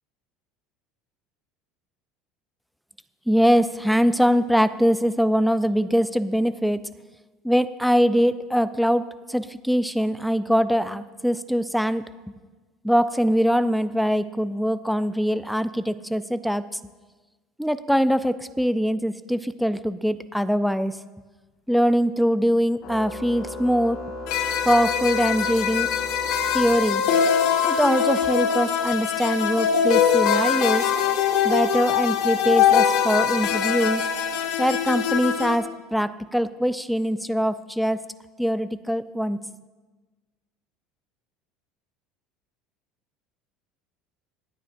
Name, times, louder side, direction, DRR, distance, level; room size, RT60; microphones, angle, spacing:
voice 1, 3.3-6.8 7.4-12.0 12.8-16.8 17.6-21.0 21.7-24.0 24.7-25.9 26.5-27.0 27.6-30.9 31.4-34.0 34.6-38.0 38.4-39.4, equal, ahead, 13 dB, 0.3 m, -22 dB
Organ, 22.8-27.3, left 2 dB, 45° left, 3.6 m, -36 dB
sound 1, 24.3-35.6, left 8 dB, 70° left, 1.3 m, -22 dB
26.0 x 8.9 x 2.5 m, 1.3 s
cardioid pair, 155°, 0 cm